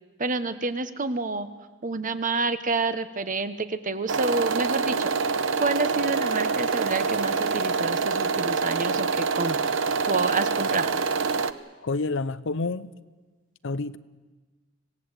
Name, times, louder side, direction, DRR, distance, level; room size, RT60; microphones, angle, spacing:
voice 1, 0.2-1.5 1.8-5.2 5.6-9.6 10.1-11.0, right 3 dB, 40° right, 1.2 m, -28 dB
sound 1, 4.1-11.5, right 4 dB, 65° right, 0.9 m, -26 dB
voice 2, 11.8-12.9 13.6-14.0, left 3 dB, 65° left, 0.7 m, -28 dB
26.0 x 17.5 x 8.3 m
head